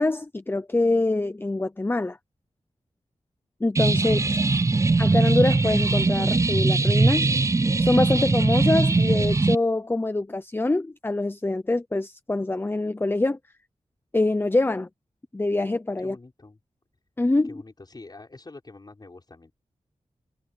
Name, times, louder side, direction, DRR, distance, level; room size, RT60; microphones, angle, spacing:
voice 1, 0.0-2.2 3.6-4.2 5.0-7.3 7.8-13.4 14.1-14.9 15.3-16.1 17.2-17.6, left 2 dB, 20° left, 0.7 m, -24 dB
sound 1, 3.8-9.6, right 3 dB, 25° right, 0.5 m, -21 dB
voice 2, 4.0-4.8 16.0-16.6 17.4-19.5, left 3 dB, 35° left, 5.5 m, -46 dB
wide cardioid pair, 105°, 12 cm